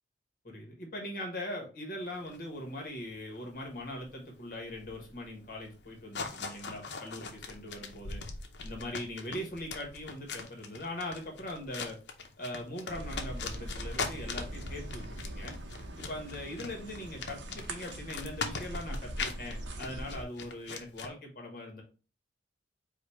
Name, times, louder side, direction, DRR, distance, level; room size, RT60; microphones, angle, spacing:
voice 1, 0.4-8.2 8.6-12.0 12.4-15.6 16.0-21.8, left 1 dB, 50° left, 0 dB, 1.4 m, -41 dB
sound 1, 2.0-21.1, left 4 dB, 70° left, 0.7 m, -41 dB
sound 2, 12.9-20.2, right 1 dB, 75° right, 0.7 m, -41 dB
5.0 x 2.3 x 4.5 m, 0.34 s
head